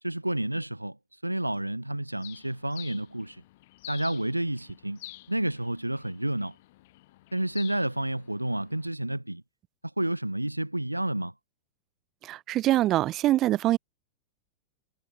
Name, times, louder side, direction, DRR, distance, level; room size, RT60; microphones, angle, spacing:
voice 1, 0.0-3.4 3.9-5.0 5.3-6.5 7.3-9.4 9.8-11.3, right 1 dB, 85° right, 1.2 m, -30 dB
Bird, 2.2-8.9, left 18 dB, 50° left, 2.1 m, -49 dB
voice 2, 12.2-13.8, right 14 dB, 35° right, 0.5 m, -24 dB
figure-of-eight pair, 90°, 0 cm